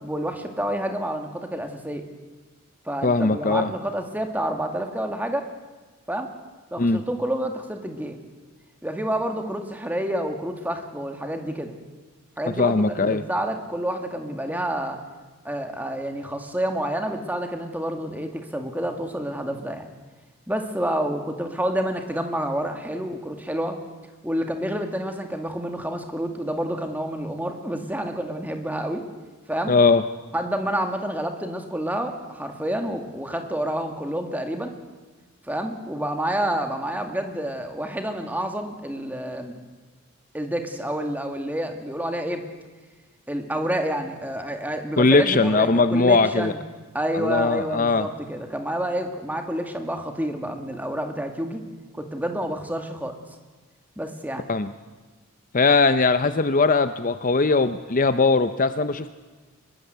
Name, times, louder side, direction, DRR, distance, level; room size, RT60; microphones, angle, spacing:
voice 1, 0.0-2.0 2.9-5.5 6.1-6.3 6.7-8.2 8.8-11.7 12.4-15.0 15.4-19.8 20.5-23.8 24.2-29.0 29.5-29.7 30.3-34.7 35.5-39.6 40.3-42.4 43.3-46.6 46.9-51.6 51.9-53.2 54.0-54.5, right 1 dB, 10° right, 5 dB, 2.1 m, -28 dB
voice 2, 3.0-3.7 6.8-7.0 12.6-13.2 29.7-30.0 45.0-46.5 47.1-48.1 54.5-54.7 55.5-59.1, left 3 dB, 40° left, 11 dB, 0.6 m, -20 dB
24.0 x 21.5 x 8.1 m, 1.3 s
head